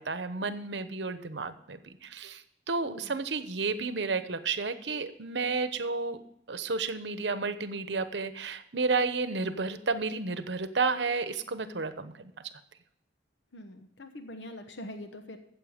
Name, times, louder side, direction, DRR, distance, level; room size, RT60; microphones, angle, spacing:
voice 1, 0.0-2.4 2.7-6.2 6.5-12.3, right 4 dB, 75° right, 11 dB, 0.9 m, -31 dB
voice 2, 2.8-3.2 13.5-15.4, left 1 dB, 85° left, 7 dB, 1.1 m, -44 dB
14.5 x 7.7 x 5.0 m, 0.76 s
head